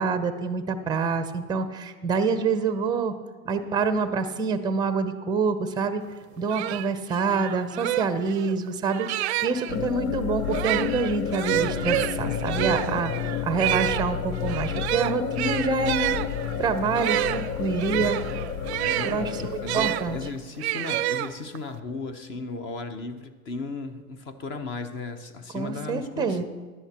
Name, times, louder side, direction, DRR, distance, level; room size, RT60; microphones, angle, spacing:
voice 1, 0.0-3.1 3.4-6.0 6.4-13.1 13.4-16.1 16.6-18.2 19.0-20.2 25.5-26.4, right 4 dB, 10° right, 10 dB, 0.6 m, -26 dB
sound 1, 6.1-6.2 6.5-9.7 10.4-20.0 20.6-21.7, right 14 dB, 50° right, 0.5 m, -29 dB
sound 2, 9.7-20.3, left 8 dB, 75° left, 0.8 m, -31 dB
voice 2, 18.9-26.4, left 3 dB, 30° left, 10 dB, 0.9 m, -35 dB
15.5 x 11.0 x 2.9 m, 1.5 s
hypercardioid pair, 120°, 42 cm